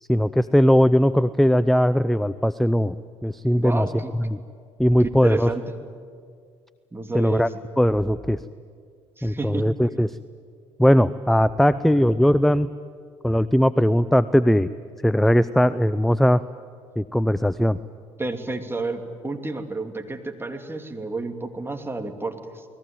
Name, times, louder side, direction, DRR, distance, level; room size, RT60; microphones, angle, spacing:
voice 1, 0.1-2.9 3.2-3.9 4.2-4.4 4.8-5.5 7.1-7.5 7.8-8.4 9.2-10.1 10.8-12.7 13.2-14.7 15.0-16.4 17.0-17.8, equal, ahead, 17 dB, 0.6 m, -19 dB
voice 2, 3.5-4.1 5.2-5.8 6.9-7.5 9.2-9.7 18.2-22.6, right 3 dB, 15° right, 5 dB, 3.0 m, -30 dB
29.0 x 20.0 x 9.3 m, 2.1 s
hypercardioid pair, 55°, 16 cm